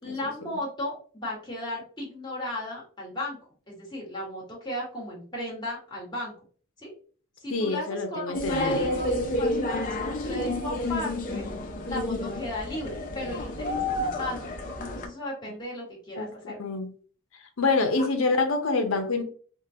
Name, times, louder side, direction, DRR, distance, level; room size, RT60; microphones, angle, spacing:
voice 1, 0.0-3.4 3.7-6.3 6.8-6.9 7.4-9.1 9.4-11.4 11.9-14.4 14.8-16.6, left 1 dB, 20° left, 1.4 m, -35 dB
voice 2, 7.5-8.8 16.2-16.9 17.6-19.2, left 3 dB, 80° left, 0.7 m, -26 dB
sound 1, 8.3-15.1, left 1 dB, 40° left, 0.5 m, -30 dB
3.7 x 2.2 x 2.7 m
head